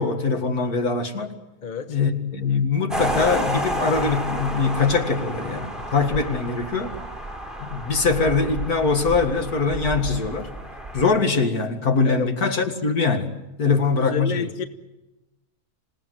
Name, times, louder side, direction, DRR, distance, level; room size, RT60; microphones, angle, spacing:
voice 1, 0.0-1.3 1.9-6.9 7.6-10.5 10.9-14.5, left 4 dB, 75° left, 6 dB, 2.5 m, -22 dB
voice 2, 1.6-2.0 12.0-12.3 13.7-13.8 14.1-14.7, left 6 dB, 35° left, 10 dB, 1.2 m, -29 dB
sound 1, 2.9-11.1, right 1 dB, ahead, 4.8 m, -31 dB
27.0 x 17.5 x 9.4 m, 1.0 s
omnidirectional pair, 1.6 m